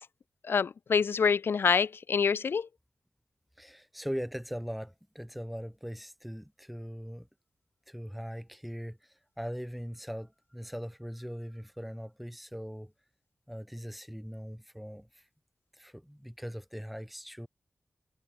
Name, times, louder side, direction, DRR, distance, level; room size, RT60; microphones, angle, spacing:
voice 1, 0.5-2.7, left 6 dB, 65° left, 0.5 m, -26 dB
voice 2, 3.6-7.3 7.9-12.9 13.5-15.2 15.7-17.5, equal, ahead, 7.6 m, -40 dB
wide cardioid pair, 100°, 4 cm